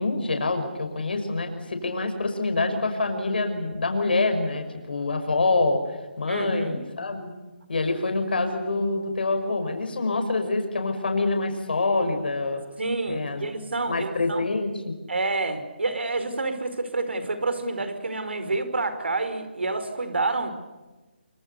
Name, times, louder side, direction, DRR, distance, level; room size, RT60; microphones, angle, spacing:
voice 1, 0.0-5.8 6.2-7.3 7.7-12.6 13.1-13.5 13.9-14.9, left 3 dB, 60° left, 6 dB, 5.8 m, -26 dB
voice 2, 6.3-6.8 12.8-14.4 15.1-20.5, right 3 dB, 85° right, 10 dB, 5.1 m, -28 dB
27.0 x 24.5 x 6.9 m, 1.2 s
hypercardioid pair, 175°, 6 cm